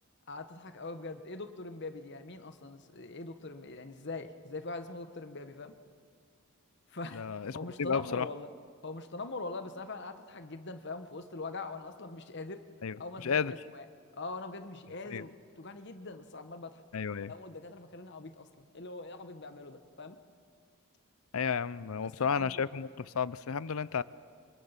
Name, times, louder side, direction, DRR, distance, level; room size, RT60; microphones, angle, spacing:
voice 1, 0.3-5.7 6.9-7.2 7.5-8.5 8.8-12.6 13.0-13.8 14.1-16.8 17.3-20.2 22.0-22.7, left 3 dB, 55° left, 8 dB, 1.2 m, -42 dB
voice 2, 7.1-8.3 12.8-13.5 15.1-15.2 16.9-17.3 21.3-24.0, left 6 dB, 90° left, 18 dB, 0.5 m, -32 dB
26.0 x 24.0 x 5.8 m, 2.1 s
head